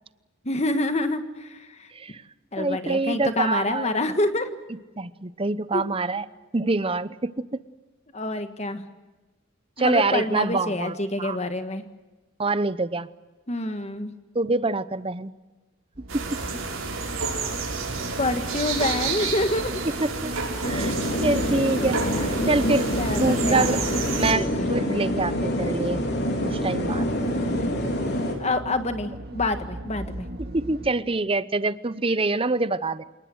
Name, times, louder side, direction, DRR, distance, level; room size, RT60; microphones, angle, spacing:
voice 1, 0.4-1.9 2.5-4.6 5.7-5.8 8.1-8.8 9.8-11.8 13.5-14.1 18.2-19.8 23.0-23.7 24.3-24.7 28.4-30.3, left 2 dB, 30° left, 9 dB, 1.6 m, -27 dB
voice 2, 1.9-2.2 2.6-4.0 5.0-6.3 6.5-7.4 9.8-11.4 12.4-13.1 14.3-15.3 16.1-16.4 20.0-20.3 20.6-20.9 21.2-23.8 24.1-26.0 26.4-27.1 30.4-33.0, right 3 dB, 25° right, 15 dB, 0.7 m, -26 dB
sound 1, 15.9-30.9, right 1 dB, 50° right, 2.2 m, -38 dB
sound 2, 16.1-24.3, right 4 dB, 75° right, 6.3 m, -30 dB
sound 3, 20.6-28.3, equal, 55° left, 4.0 m, -26 dB
28.5 x 19.5 x 7.9 m, 1.2 s
head